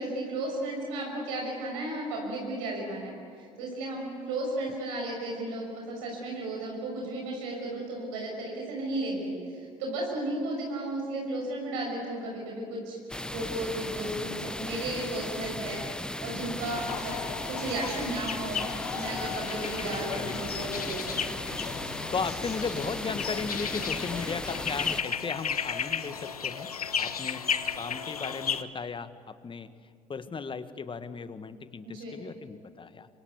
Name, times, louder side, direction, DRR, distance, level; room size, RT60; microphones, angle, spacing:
voice 1, 0.0-13.0 13.3-15.8 16.2-17.2 17.5-18.6 18.9-21.2 31.8-32.2, right 1 dB, 65° right, -1 dB, 6.3 m, -34 dB
sound 1, 13.1-25.0, left 1 dB, 5° left, 0.8 m, -36 dB
sound 2, 16.6-28.6, left 7 dB, 85° left, 0.8 m, -34 dB
voice 2, 20.2-20.5 20.8-20.9 22.1-26.7 27.0-29.7 30.1-33.1, left 5 dB, 25° left, 12 dB, 1.6 m, -36 dB
27.0 x 25.5 x 8.4 m, 2.3 s
figure-of-eight pair, 55°, 19 cm